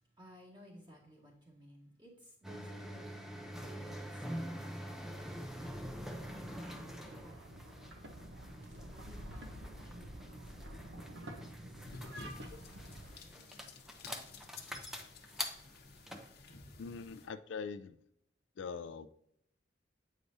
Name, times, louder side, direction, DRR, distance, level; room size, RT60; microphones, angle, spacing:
voice 1, 0.0-3.2 3.8-13.8, equal, 25° right, -3 dB, 1.9 m, -60 dB
sound 1, 2.4-16.3, equal, ahead, 0.6 m, -46 dB
sound 2, 6.1-13.2, equal, 65° right, 0.8 m, -49 dB
sound 3, 11.8-17.3, left 3 dB, 60° left, 0.9 m, -53 dB
voice 2, 16.8-18.0 18.6-19.1, left 5 dB, 75° left, 11 dB, 0.4 m, -42 dB
8.2 x 4.8 x 2.7 m, 0.71 s
head